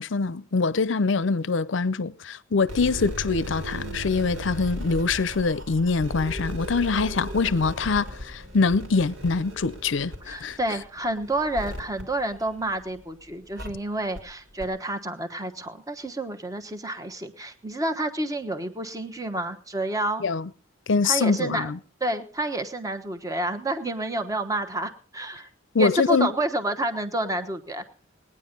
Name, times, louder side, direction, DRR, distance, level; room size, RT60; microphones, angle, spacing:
voice 1, 0.0-10.6 20.2-20.5 20.9-21.8 25.7-26.3, left 4 dB, 65° left, 0.6 m, -24 dB
sound 1, 2.6-13.0 13.6-13.7 14.2-14.3 14.6-14.7, equal, 75° right, 3.1 m, -37 dB
voice 2, 10.3-20.2 21.0-21.7 22.0-25.5 25.8-27.8, right 1 dB, 15° right, 1.1 m, -29 dB
19.5 x 9.7 x 5.3 m
head